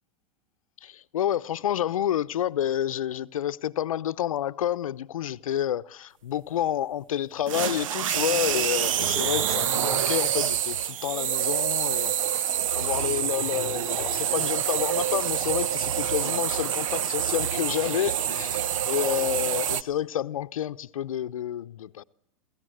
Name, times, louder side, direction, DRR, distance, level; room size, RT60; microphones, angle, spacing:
voice 1, 0.8-22.0, left 11 dB, 85° left, 0.7 m, -29 dB
sound 1, 7.5-19.8, right 10 dB, 75° right, 0.9 m, -27 dB
27.5 x 14.5 x 7.8 m
hypercardioid pair, 125°, 17 cm